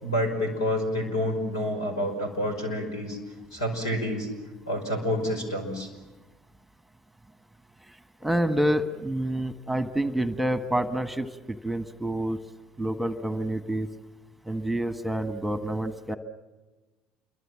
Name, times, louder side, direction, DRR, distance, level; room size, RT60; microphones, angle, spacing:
voice 1, 0.0-3.2 3.5-4.3 4.7-5.9, left 1 dB, 90° left, 5 dB, 5.4 m, -28 dB
voice 2, 8.2-12.4 12.8-13.9 14.4-16.2, right 1 dB, 5° right, 9 dB, 1.5 m, -28 dB
27.5 x 23.0 x 7.4 m, 1.2 s
hypercardioid pair, 70°, 2 cm